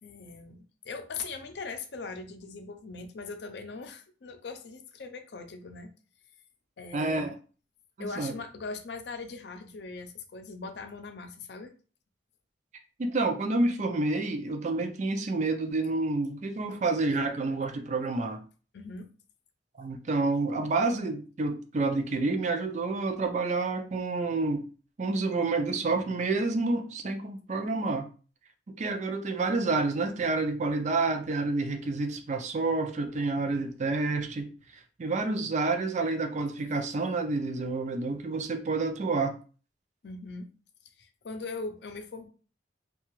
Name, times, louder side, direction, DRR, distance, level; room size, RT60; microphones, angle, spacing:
voice 1, 0.0-0.6 0.8-5.9 6.8-7.3 8.0-11.7 18.7-19.1 40.0-40.4 41.0-42.3, left 4 dB, 65° left, 0.5 m, -40 dB
voice 2, 6.9-7.4 8.2-8.3 13.0-18.4 19.8-24.7 25.0-28.1 28.7-34.5 35.0-39.4, right 3 dB, 40° right, 0.4 m, -29 dB
2.8 x 2.3 x 3.0 m
head